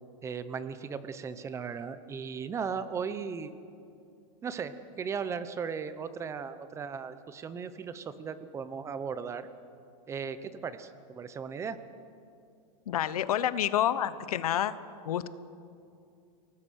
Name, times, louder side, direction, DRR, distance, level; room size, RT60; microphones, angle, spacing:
voice 1, 0.2-3.5 4.4-9.5 10.1-11.8, right 6 dB, 15° right, 12 dB, 0.9 m, -37 dB
voice 2, 12.9-14.7 15.1-15.3, left 11 dB, 90° left, 14 dB, 1.1 m, -28 dB
29.5 x 18.5 x 6.5 m, 2.5 s
supercardioid pair, 155°, 18 cm